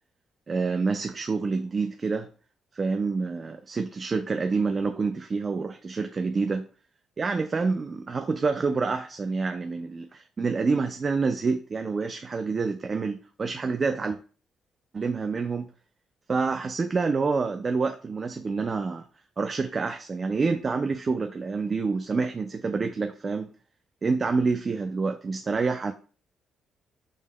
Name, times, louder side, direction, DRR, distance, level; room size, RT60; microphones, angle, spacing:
voice 1, 0.5-2.3 2.7-6.7 7.2-14.2 14.9-15.7 16.3-19.0 19.4-23.5 24.0-25.9, right 4 dB, 35° right, 0.4 m, -27 dB
5.3 x 3.5 x 2.2 m
cardioid pair, 90°, 0 cm